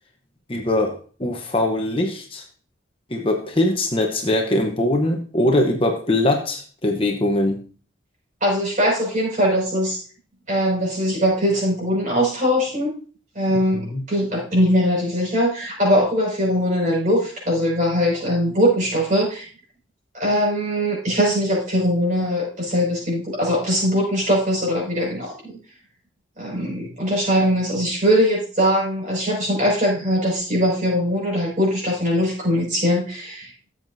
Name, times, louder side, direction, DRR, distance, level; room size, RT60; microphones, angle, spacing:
voice 1, 0.5-2.4 3.1-7.6 13.7-14.0, left 1 dB, 25° left, 3 dB, 0.9 m, -22 dB
voice 2, 8.4-10.0 10.5-12.9 13.3-19.5 20.1-25.5 26.4-33.5, equal, 40° right, -2 dB, 5.8 m, -21 dB
15.5 x 7.5 x 2.7 m, 0.40 s
head